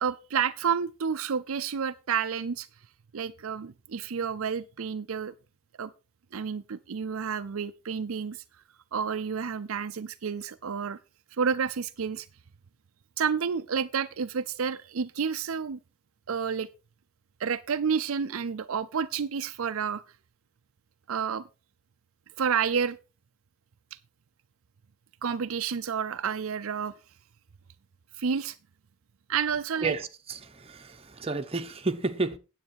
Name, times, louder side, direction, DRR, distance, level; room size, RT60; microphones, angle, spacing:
voice 1, 0.0-2.7 3.1-5.3 5.8-5.9 6.3-8.4 8.9-11.0 11.4-12.3 13.2-15.8 16.3-16.7 17.4-20.0 21.1-21.4 22.4-23.0 25.2-26.9 28.2-28.6 29.3-30.0, right 6 dB, 70° right, 0.5 m, -30 dB
voice 2, 29.8-32.4, right 3 dB, 30° right, 1.0 m, -31 dB
9.7 x 8.0 x 4.7 m
head